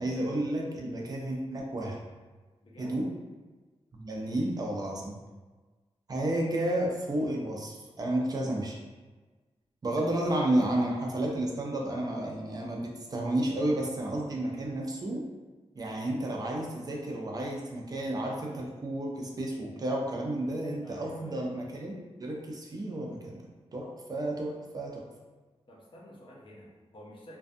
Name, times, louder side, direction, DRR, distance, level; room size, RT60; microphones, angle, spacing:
voice 1, 0.0-2.0 2.8-3.1 3.9-5.2 6.1-8.8 9.8-15.2 15.8-21.9 22.2-23.4 23.7-25.0, right 1 dB, 35° right, -1 dB, 0.4 m, -31 dB
voice 2, 2.6-3.0 20.8-21.5 25.7-27.4, equal, 50° left, -3 dB, 0.6 m, -50 dB
2.5 x 2.2 x 2.5 m, 1.3 s
wide cardioid pair, 165°, 11 cm